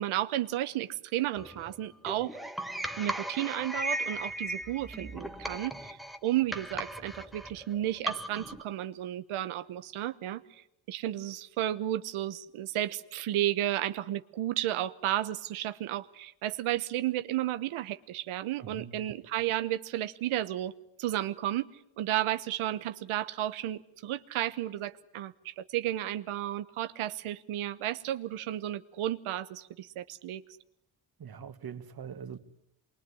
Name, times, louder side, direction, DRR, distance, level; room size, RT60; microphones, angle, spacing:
voice 1, 0.0-2.4 3.0-10.6 10.9-20.7 21.0-21.7 22.0-30.4, right 13 dB, 90° right, 1.1 m, -33 dB
sound 1, 1.4-8.6, right 1 dB, ahead, 1.5 m, -37 dB
voice 2, 18.6-19.0 31.2-32.4, right 7 dB, 50° right, 2.2 m, -42 dB
25.5 x 22.5 x 9.8 m
cardioid pair, 100°, 48 cm